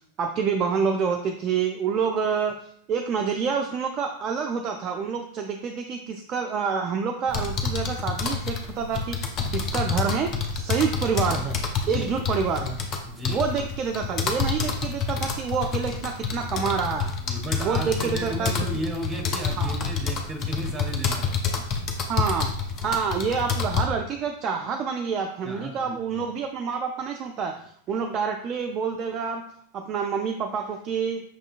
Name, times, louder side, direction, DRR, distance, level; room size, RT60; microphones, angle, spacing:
voice 1, 0.2-2.6 2.9-11.6 11.9-12.8 13.3-17.1 17.6-18.5 19.6-19.8 22.0-22.5 22.8-29.4 29.7-31.2, right 6 dB, 30° right, 3 dB, 0.3 m, -27 dB
sound 1, 7.3-23.8, left 5 dB, 30° left, 0.6 m, -28 dB
voice 2, 13.1-13.5 17.2-21.6 25.4-26.3, right 1 dB, 15° right, 2 dB, 0.9 m, -35 dB
6.0 x 2.6 x 2.4 m, 0.63 s
figure-of-eight pair, 90°, 0 cm